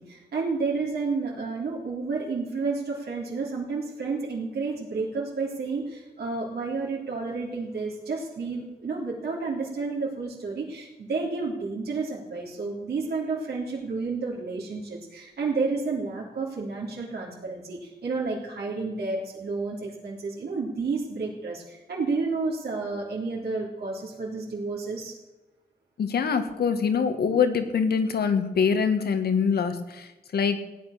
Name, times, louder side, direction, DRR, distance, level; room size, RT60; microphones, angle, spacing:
voice 1, 0.0-25.1, right 4 dB, 85° right, -5 dB, 3.6 m, -31 dB
voice 2, 26.0-30.6, left 6 dB, 90° left, 8 dB, 1.7 m, -24 dB
16.5 x 10.0 x 6.7 m, 1.0 s
wide cardioid pair, 155°, 16 cm